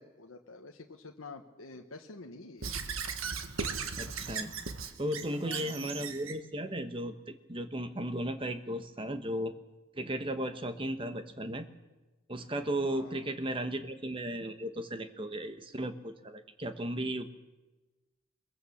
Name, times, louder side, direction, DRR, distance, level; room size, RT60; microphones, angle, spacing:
voice 1, 0.0-2.7 5.3-5.8 12.8-13.2, left 3 dB, 75° left, 3 dB, 1.2 m, -48 dB
Squeak / Writing, 2.6-6.4, right 5 dB, 80° right, 1.5 m, -37 dB
voice 2, 4.0-4.5 5.0-9.5 10.0-11.7 12.3-17.3, right 1 dB, 25° right, 9 dB, 1.2 m, -35 dB
22.0 x 20.5 x 7.2 m, 1.2 s
head